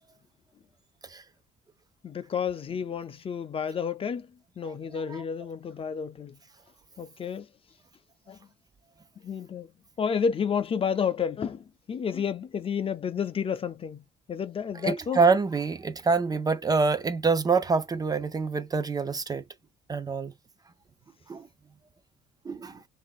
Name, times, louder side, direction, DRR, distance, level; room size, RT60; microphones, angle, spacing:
voice 1, 2.0-4.3 4.6-6.4 7.0-7.5 8.3-8.4 9.2-9.7 10.0-15.2, left 7 dB, 35° left, 0.5 m, -31 dB
voice 2, 14.8-19.4 19.9-20.3 21.3-21.4 22.5-22.8, right 4 dB, 20° right, 0.5 m, -25 dB
2.9 x 2.7 x 3.7 m
cardioid pair, 110°, 17 cm